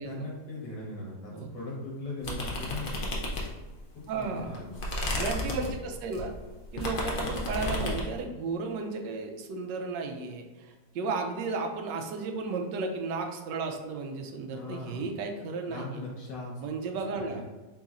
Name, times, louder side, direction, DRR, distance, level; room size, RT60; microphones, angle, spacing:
voice 1, 0.0-2.9 3.9-4.9 14.5-15.1 15.7-16.6 17.1-17.4, left 2 dB, 75° left, -3 dB, 1.8 m, -39 dB
sound 1, 2.2-3.8 4.2-8.1, left 1 dB, 55° left, 0.6 m, -32 dB
voice 2, 4.1-4.6 5.1-6.4 6.7-16.0 16.6-17.4, right 4 dB, 80° right, 3 dB, 1.3 m, -34 dB
4.1 x 3.8 x 2.4 m, 1.2 s
omnidirectional pair, 1.9 m